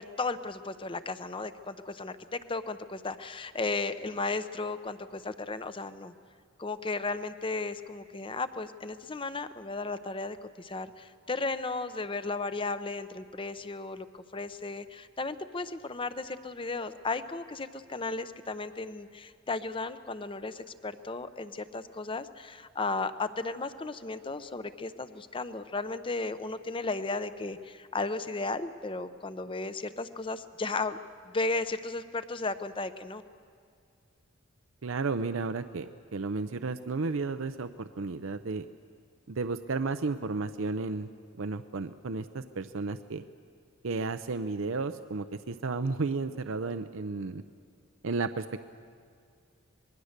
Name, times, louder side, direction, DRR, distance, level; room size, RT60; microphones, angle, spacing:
voice 1, 0.0-6.1 6.6-31.0 31.3-33.2, left 3 dB, 25° left, 12 dB, 0.7 m, -35 dB
voice 2, 34.8-38.7 39.3-41.1 41.4-43.2 43.8-47.4 48.0-48.6, right 4 dB, 75° right, 10 dB, 0.6 m, -33 dB
26.0 x 21.0 x 6.6 m, 2.3 s
head